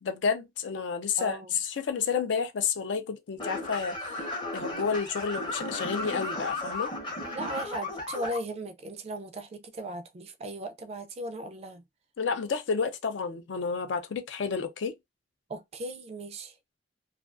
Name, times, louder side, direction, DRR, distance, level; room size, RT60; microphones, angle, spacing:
voice 1, 0.0-4.0 4.5-6.9 12.2-14.9, left 5 dB, 75° left, 0.4 m, -30 dB
voice 2, 1.2-1.5 7.3-11.8 15.5-16.5, right 1 dB, 35° right, 0.3 m, -37 dB
sound 1, 3.4-8.4, left 2 dB, 25° left, 0.7 m, -35 dB
2.4 x 2.3 x 2.4 m
head